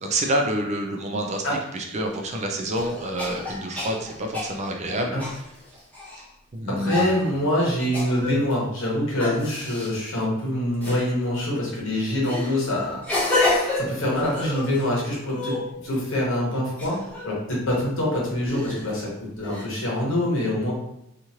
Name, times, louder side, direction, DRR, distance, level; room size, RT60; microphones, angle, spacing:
voice 1, 0.0-1.4 1.7-5.2 6.5-7.2, right 1 dB, 35° right, 3 dB, 0.4 m, -27 dB
sound 1, 2.7-6.2 6.8-7.2 7.9-8.5 9.2-9.9 10.8-11.1 12.2-14.8 15.2-16.1 16.8-17.3 18.4-18.9 19.4-19.6, left 2 dB, 5° left, 0.8 m, -29 dB
voice 2, 6.7-15.6 15.8-17.0 17.2-20.7, left 1 dB, 65° left, -4 dB, 1.1 m, -25 dB
3.0 x 2.4 x 2.7 m, 0.79 s
head